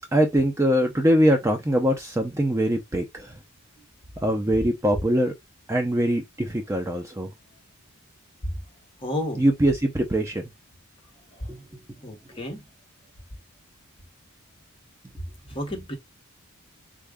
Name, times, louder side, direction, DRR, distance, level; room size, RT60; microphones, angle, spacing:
voice 1, 0.1-3.3 4.2-5.3 5.7-7.3 9.4-10.4 11.5-11.6, equal, 15° right, 0.5 m, -22 dB
voice 2, 9.0-9.4 11.4-11.5 12.0-12.6 15.5-16.0, left 1 dB, 25° left, 0.9 m, -31 dB
3.6 x 2.3 x 3.4 m
head